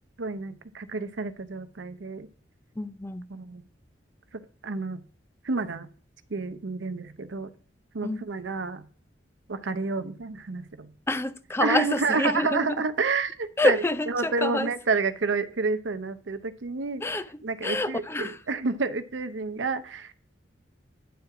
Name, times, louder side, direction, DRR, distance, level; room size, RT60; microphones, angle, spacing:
voice 1, 0.2-2.3 3.3-3.6 4.3-5.0 5.4-5.9 6.3-7.5 7.9-8.9 9.5-10.9 11.6-13.8 14.1-17.0 17.4-20.1, right 4 dB, 75° right, 0.7 m, -29 dB
voice 2, 2.8-3.3 8.0-8.2 11.1-12.8 13.6-14.7 17.0-17.3 17.6-18.4, left 2 dB, 15° left, 0.4 m, -27 dB
10.0 x 4.5 x 4.7 m
head